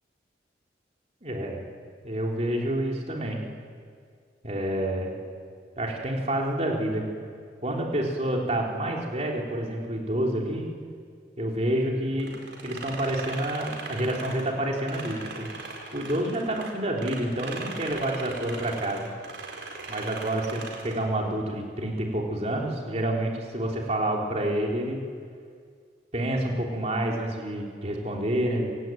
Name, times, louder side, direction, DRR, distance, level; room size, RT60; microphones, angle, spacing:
voice 1, 1.2-1.6 2.0-3.4 4.4-5.1 5.8-7.1 7.6-10.7 11.4-12.3 12.6-15.5 15.9-19.1 19.9-25.0 26.1-28.7, right 1 dB, 35° right, 0 dB, 3.5 m, -28 dB
sound 1, 12.2-16.7 17.0-21.1, right 3 dB, 75° right, 4.4 m, -39 dB
26.5 x 17.0 x 9.2 m, 2.1 s
head